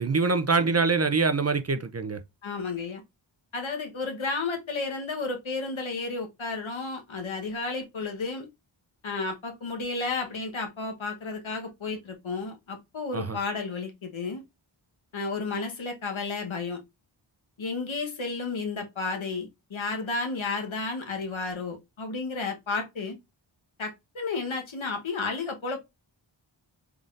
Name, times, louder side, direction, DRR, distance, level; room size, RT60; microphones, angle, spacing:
voice 1, 0.0-2.2 13.1-13.4, right 4 dB, 35° right, 0.5 m, -24 dB
voice 2, 2.4-3.0 3.5-8.5 9.0-14.4 15.1-16.8 17.6-23.2 23.8-25.8, left 3 dB, 75° left, 1.2 m, -32 dB
3.8 x 3.6 x 2.5 m
wide cardioid pair, 75°, 47 cm